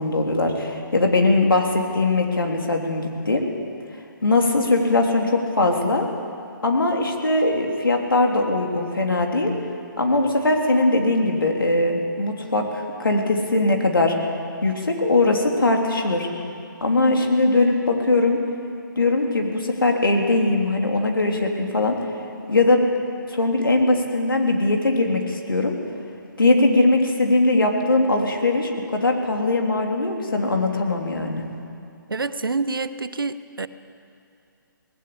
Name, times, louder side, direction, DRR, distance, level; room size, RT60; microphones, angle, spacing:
voice 1, 0.0-3.5 4.2-6.1 6.6-9.5 10.0-14.1 14.6-16.3 16.8-18.4 19.0-22.0 22.5-22.8 23.3-25.7 26.4-31.4, left 2 dB, 80° left, 2 dB, 3.2 m, -20 dB
voice 2, 32.1-33.7, right 3 dB, 80° right, 13 dB, 0.9 m, -27 dB
18.5 x 16.5 x 8.5 m, 2.5 s
figure-of-eight pair, 140°, 11 cm